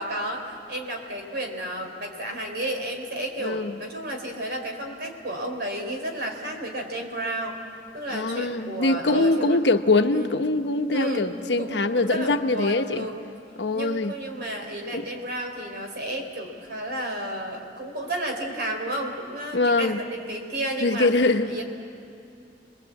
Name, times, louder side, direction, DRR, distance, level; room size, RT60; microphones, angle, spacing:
voice 1, 0.0-7.6 7.9-9.6 10.1-10.3 10.9-13.2 13.7-21.1 21.5-21.6, right 1 dB, 60° right, 3 dB, 3.9 m, -32 dB
voice 2, 3.4-3.8 8.1-13.1 13.6-14.1 14.9-15.1 19.5-20.0 20.8-21.5, left 2 dB, 80° left, 7 dB, 1.0 m, -23 dB
30.0 x 21.5 x 8.4 m, 2.6 s
head